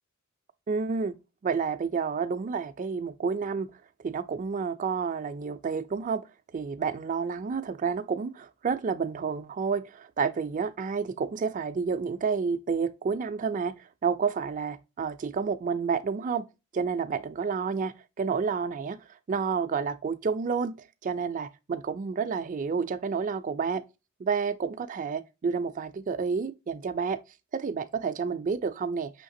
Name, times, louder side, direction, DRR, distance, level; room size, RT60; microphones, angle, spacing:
voice 1, 0.7-1.1 1.4-3.7 4.0-6.2 6.5-13.7 14.0-16.4 16.7-19.0 19.3-20.8 21.0-23.8 24.2-27.2 27.5-29.1, right 5 dB, 35° right, 0.3 m, -30 dB
5.7 x 3.2 x 2.6 m
head